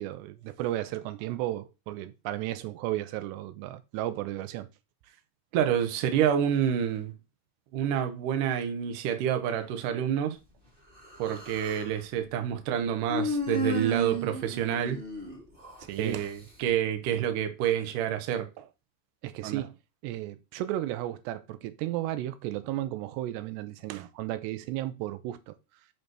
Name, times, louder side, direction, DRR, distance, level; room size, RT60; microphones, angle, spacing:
voice 1, 0.0-4.7 11.3-11.4 15.8-16.3 18.6-18.7 19.2-19.8 20.0-25.6, right 14 dB, 85° right, 2.8 m, -34 dB
voice 2, 5.5-7.1 7.7-10.4 11.2-15.0 16.0-18.5 19.4-19.6, right 9 dB, 65° right, 2.2 m, -28 dB
Human voice, 11.0-11.9 13.1-15.8, right 1 dB, 15° right, 2.1 m, -33 dB
6.5 x 5.4 x 6.1 m
omnidirectional pair, 4.9 m